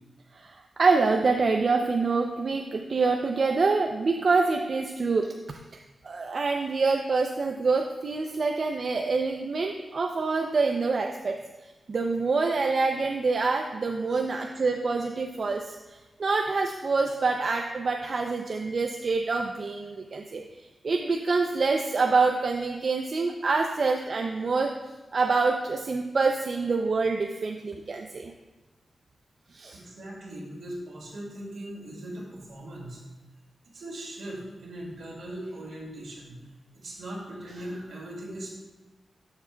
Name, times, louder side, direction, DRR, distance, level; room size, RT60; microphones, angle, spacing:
voice 1, 0.3-5.6 6.0-11.4 11.6-20.4 20.8-24.7 25.1-28.3 29.5-29.8, right 4 dB, 55° right, 3 dB, 0.4 m, -26 dB
voice 2, 29.7-33.0 33.7-36.4 36.7-38.6, right 1 dB, 80° right, -2 dB, 2.1 m, -39 dB
11.5 x 6.7 x 2.2 m, 1.2 s
wide cardioid pair, 100°, 0 cm